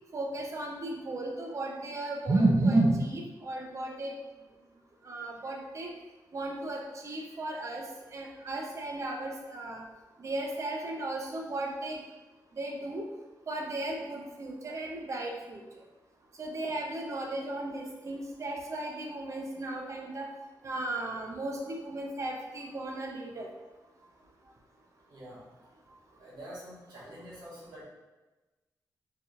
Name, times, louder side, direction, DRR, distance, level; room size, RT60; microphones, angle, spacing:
voice 1, 0.1-4.1 5.0-5.9 6.3-7.8 8.1-9.8 10.2-12.0 12.6-13.0 13.5-15.6 16.4-20.3 20.6-23.5, right 2 dB, 40° right, 0 dB, 0.7 m, -33 dB
voice 2, 25.1-25.5 26.1-27.8, equal, 70° right, -7 dB, 1.4 m, -46 dB
4.7 x 3.6 x 2.5 m, 1.2 s
wide cardioid pair, 160°, 7 cm